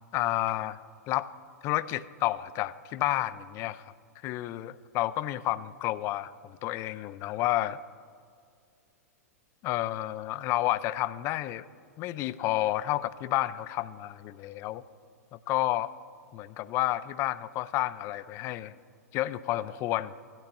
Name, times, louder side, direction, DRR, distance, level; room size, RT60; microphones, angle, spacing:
voice 1, 0.1-0.8 1.1-1.3 1.6-3.8 4.2-7.8 9.6-11.7 12.0-14.8 15.3-15.9 16.3-18.7 19.1-20.1, left 15 dB, 30° left, 16 dB, 0.3 m, -30 dB
17.5 x 12.0 x 2.3 m, 2.3 s
figure-of-eight pair, 100°, 9 cm